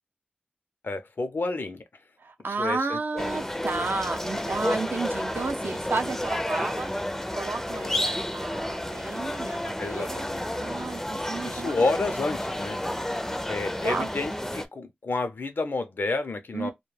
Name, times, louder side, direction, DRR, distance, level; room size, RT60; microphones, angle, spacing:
voice 1, 0.8-1.8 2.5-3.3 7.7-8.0 9.8-10.4 11.4-12.8 13.0-13.2 13.5-16.7, left 3 dB, 75° left, 0.5 m, -30 dB
voice 2, 2.2-6.9 7.4-10.3 10.5-11.9 13.8-14.1 16.5-16.7, right 4 dB, 80° right, 0.4 m, -32 dB
sound 1, 3.2-14.7, left 1 dB, 10° left, 0.4 m, -31 dB
2.2 x 2.2 x 3.2 m
wide cardioid pair, 70°, 4 cm